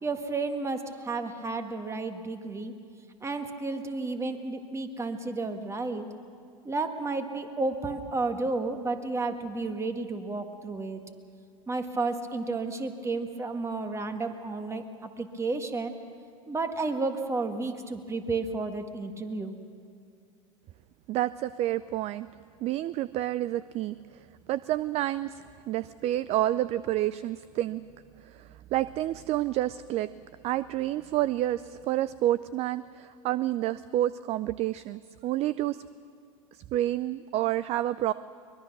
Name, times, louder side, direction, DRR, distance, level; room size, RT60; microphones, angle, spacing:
voice 1, 0.0-2.7 3.2-6.1 6.7-11.0 11.7-14.8 15.2-15.9 16.5-19.6, right 3 dB, 15° right, 7 dB, 1.7 m, -32 dB
voice 2, 21.1-22.3 22.6-24.0 24.5-27.8 28.7-30.1 30.4-35.8 36.7-38.1, right 14 dB, 40° right, 17 dB, 0.4 m, -29 dB
23.5 x 21.0 x 6.1 m, 2.3 s
hypercardioid pair, 90°, 17 cm